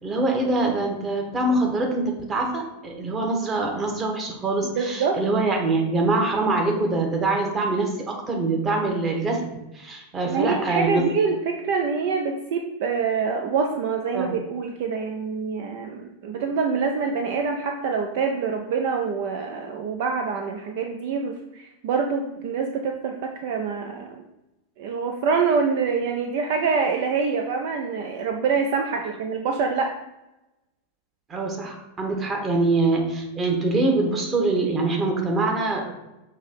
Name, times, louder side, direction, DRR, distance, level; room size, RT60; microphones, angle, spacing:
voice 1, 0.0-11.1 14.1-14.4 16.3-16.5 31.3-35.9, right 2 dB, 20° right, 1 dB, 1.3 m, -24 dB
voice 2, 4.8-5.2 10.2-24.2 24.8-29.9, right 5 dB, 50° right, 3 dB, 0.5 m, -25 dB
6.4 x 2.9 x 5.2 m, 0.97 s
figure-of-eight pair, 90°, 0 cm